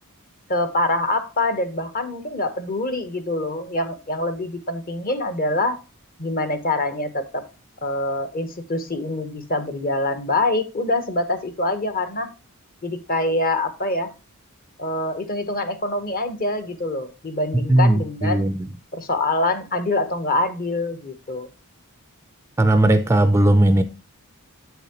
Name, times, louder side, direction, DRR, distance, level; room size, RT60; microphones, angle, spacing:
voice 1, 0.5-5.8 6.2-7.4 7.8-12.3 12.8-14.1 14.8-18.5 18.9-21.5, left 2 dB, 40° left, 0.9 m, -25 dB
voice 2, 17.7-18.7 22.6-23.8, right 1 dB, 10° right, 0.4 m, -17 dB
7.8 x 7.0 x 2.9 m
head